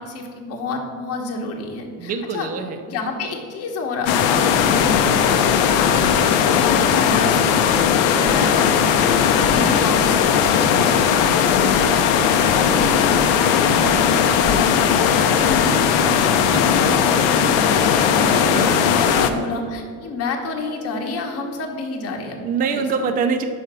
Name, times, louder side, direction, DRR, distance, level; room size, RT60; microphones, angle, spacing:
voice 1, 0.0-2.5 2.9-11.2 11.8-17.1 17.6-18.1 18.3-22.8, left 3 dB, 35° left, 2 dB, 1.0 m, -30 dB
voice 2, 2.0-2.8 11.6-11.9 16.5-16.6 18.3-19.1 22.4-23.4, right 5 dB, 20° right, 6 dB, 0.4 m, -25 dB
sound 1, 4.1-19.3, left 7 dB, 70° left, 0.7 m, -17 dB
5.6 x 4.6 x 6.0 m, 2.1 s
cardioid pair, 135°, 42 cm